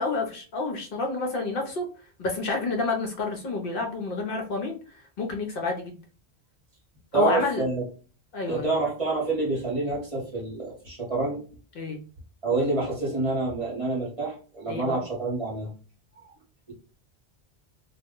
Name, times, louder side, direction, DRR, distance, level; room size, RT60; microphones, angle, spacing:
voice 1, 0.0-1.8 2.2-4.8 5.2-6.0 7.1-7.7 8.3-8.7 11.8-12.0 14.7-15.0, left 3 dB, 65° left, 2 dB, 0.7 m, -29 dB
voice 2, 7.1-7.8 8.5-11.4 12.4-15.7 16.2-16.3, right 3 dB, 35° right, -3 dB, 0.8 m, -27 dB
2.2 x 2.0 x 3.5 m, 0.37 s
omnidirectional pair, 1.1 m